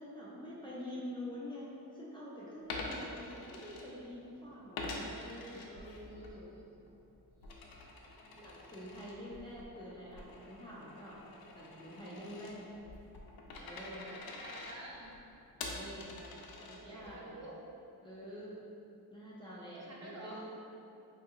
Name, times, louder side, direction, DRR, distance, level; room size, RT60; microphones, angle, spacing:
voice 1, 0.0-6.6 8.3-11.2 11.5-12.7 13.6-14.1 15.6-16.1 16.7-17.4 18.0-18.5 19.1-20.6, equal, 15° left, -8 dB, 0.3 m, -47 dB
Coin (dropping), 2.6-4.3 4.7-6.3 6.7-17.2, left 2 dB, 80° left, 0.5 m, -46 dB
voice 2, 6.1-6.4 7.3-8.3 9.3-9.4 14.0-15.1 16.6-17.5 19.8-20.4, right 1 dB, 45° right, -4 dB, 0.6 m, -52 dB
3.6 x 2.7 x 2.4 m, 2.7 s
wide cardioid pair, 140°, 36 cm